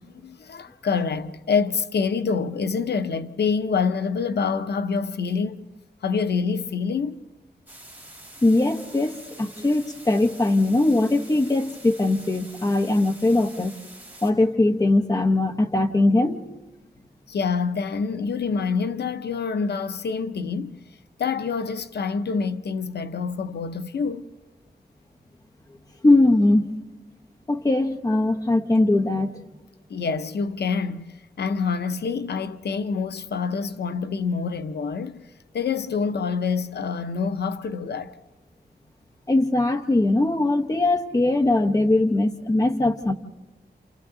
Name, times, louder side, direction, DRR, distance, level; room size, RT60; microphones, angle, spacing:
voice 1, 0.0-5.6 6.0-7.2 17.3-20.8 21.2-24.3 29.9-35.3 35.5-38.1, left 5 dB, 80° left, 0.6 m, -26 dB
sound 1, 7.7-14.3, right 1 dB, 10° right, 5.6 m, -46 dB
voice 2, 8.4-13.7 14.2-16.4 26.0-26.7 27.5-29.4 39.3-43.1, left 2 dB, 20° left, 0.9 m, -20 dB
30.0 x 28.0 x 3.8 m
wide cardioid pair, 150°, 17 cm